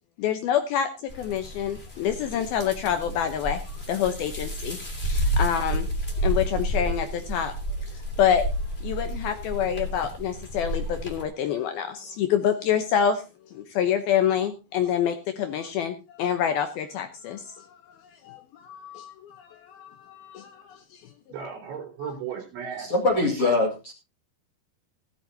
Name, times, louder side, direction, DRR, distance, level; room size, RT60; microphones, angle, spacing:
voice 1, 0.2-4.8 5.0-5.9 6.2-7.5 7.9-8.5 8.8-18.0 18.2-21.1 22.0-22.1, left 9 dB, 70° left, 7 dB, 2.5 m, -27 dB
sound 1, 1.1-11.2, equal, 20° left, 2.2 m, -30 dB
voice 2, 21.3-23.4, right 7 dB, 90° right, 1 dB, 6.4 m, -36 dB
voice 3, 22.8-23.9, left 2 dB, 40° left, 1 dB, 2.4 m, -23 dB
16.5 x 13.0 x 2.8 m, 0.28 s
omnidirectional pair, 5.1 m